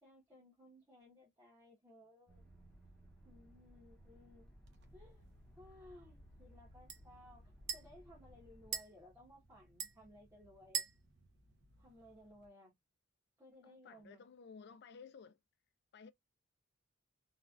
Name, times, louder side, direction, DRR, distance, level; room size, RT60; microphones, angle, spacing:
voice 1, 0.0-2.5 3.2-4.5 4.9-5.3 5.5-10.9 11.8-12.7 13.4-14.2, left 1 dB, 15° right, 1.2 m, -60 dB
sound 1, 2.3-8.8, equal, 5° left, 0.8 m, -60 dB
sound 2, 4.7-12.5, right 7 dB, 60° right, 0.7 m, -48 dB
voice 2, 13.6-15.4 15.9-16.1, left 5 dB, 55° left, 0.4 m, -55 dB
3.2 x 2.4 x 2.4 m
head